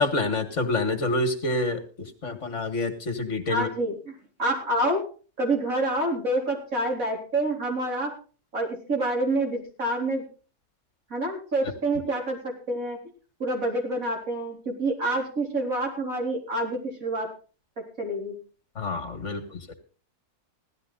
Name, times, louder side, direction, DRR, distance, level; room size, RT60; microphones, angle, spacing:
voice 1, 0.0-3.7 18.8-19.7, left 2 dB, 50° left, 7 dB, 2.2 m, -27 dB
voice 2, 3.5-5.1 5.4-8.2 8.5-10.3 11.1-13.0 13.4-17.3 17.8-18.4, right 1 dB, 60° right, 1 dB, 4.2 m, -27 dB
16.5 x 12.5 x 3.9 m, 0.38 s
omnidirectional pair, 1.7 m